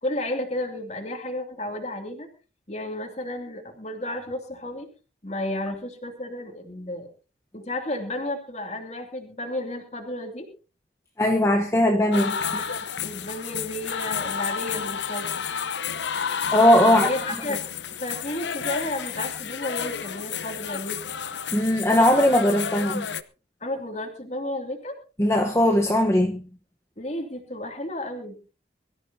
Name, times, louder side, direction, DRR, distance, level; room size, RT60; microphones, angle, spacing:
voice 1, 0.0-2.3 2.7-4.9 5.2-7.1 7.5-10.5 12.2-15.4 16.8-17.6 18.0-21.0 23.6-25.0 27.0-28.4, left 1 dB, 35° left, 2.7 m, -32 dB
voice 2, 11.2-12.4 16.5-17.1 21.5-23.1 25.2-26.5, left 1 dB, 15° left, 1.1 m, -19 dB
sound 1, 12.1-23.2, left 7 dB, 75° left, 0.9 m, -31 dB
23.5 x 13.5 x 2.8 m
head